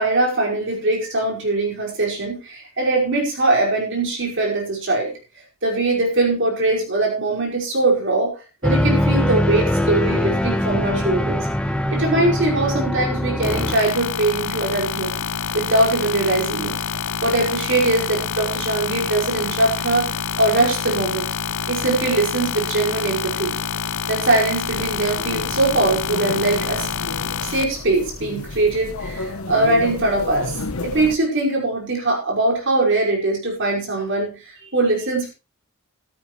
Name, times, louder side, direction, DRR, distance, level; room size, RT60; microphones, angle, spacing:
voice 1, 0.0-5.1 5.6-8.3 8.6-11.5 11.9-15.1 15.5-16.8 17.2-21.3 21.7-23.6 24.1-26.9 27.4-35.3, right 2 dB, 60° right, -1 dB, 5.5 m, -21 dB
sound 1, 8.6-13.7, left 1 dB, 5° left, 1.2 m, -21 dB
sound 2, 13.4-27.6, left 7 dB, 65° left, 0.7 m, -27 dB
sound 3, 24.7-31.2, left 2 dB, 80° left, 1.1 m, -32 dB
14.5 x 13.0 x 3.2 m, 0.31 s
head